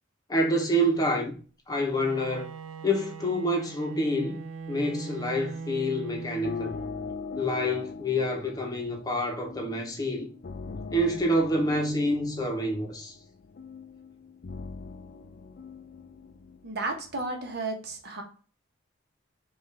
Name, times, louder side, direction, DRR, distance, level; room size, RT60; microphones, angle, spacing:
voice 1, 0.3-1.4 1.7-2.5 2.8-6.7 7.4-10.3 10.9-13.2, equal, 20° left, 0.9 m, -27 dB
Bowed string instrument, 1.7-7.1, right 5 dB, 90° right, 0.5 m, -40 dB
sound 1, 6.0-17.1, left 4 dB, 50° left, 0.4 m, -41 dB
voice 2, 16.6-18.2, right 2 dB, 55° right, 1.1 m, -33 dB
5.3 x 2.5 x 3.3 m
head